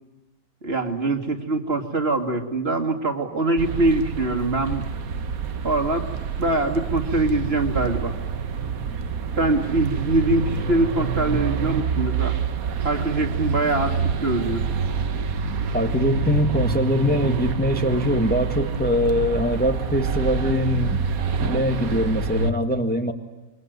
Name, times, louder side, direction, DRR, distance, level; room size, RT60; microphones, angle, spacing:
voice 1, 0.6-4.9 5.6-6.1 6.4-8.2 9.4-12.4 12.8-14.6, right 2 dB, 45° right, 3 dB, 2.6 m, -23 dB
sound 1, 3.6-22.5, right 5 dB, 75° right, 1.6 m, -27 dB
voice 2, 15.7-21.0 21.4-23.1, left 1 dB, 5° left, 4 dB, 1.5 m, -23 dB
26.5 x 23.0 x 9.3 m, 1.0 s
omnidirectional pair, 1.5 m